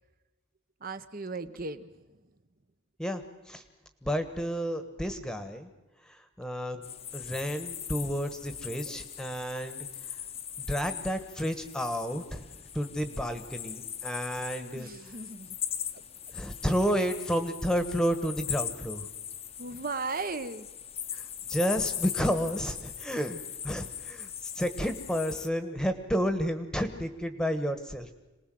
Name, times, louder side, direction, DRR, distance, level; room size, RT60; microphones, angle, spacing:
voice 1, 0.8-2.3 14.7-15.6 15.9-16.0 19.6-20.7, right 3 dB, 40° right, 12 dB, 1.1 m, -37 dB
voice 2, 4.0-5.7 6.1-6.8 7.1-9.9 10.6-12.4 12.7-14.9 16.3-19.1 21.1-21.2 21.5-28.1, equal, 5° left, 9 dB, 1.3 m, -31 dB
sound 1, 6.8-25.5, left 9 dB, 30° left, 0.9 m, -40 dB
27.0 x 19.5 x 7.8 m, 1.1 s
head